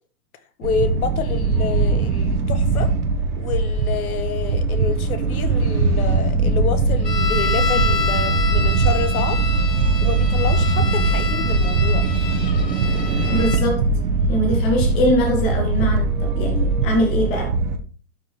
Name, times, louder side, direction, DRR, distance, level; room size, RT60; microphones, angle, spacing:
voice 1, 0.6-2.9 3.4-9.4 10.0-12.0, left 6 dB, 60° left, 1.6 m, -28 dB
sound 1, 0.6-17.8, right 3 dB, 65° right, 1.7 m, -20 dB
sound 2, 7.0-13.6, left 5 dB, 85° left, 1.4 m, -28 dB
voice 2, 13.3-13.9 14.3-17.5, equal, 5° left, 0.5 m, -22 dB
11.5 x 5.3 x 3.3 m
hypercardioid pair, 145°, 49 cm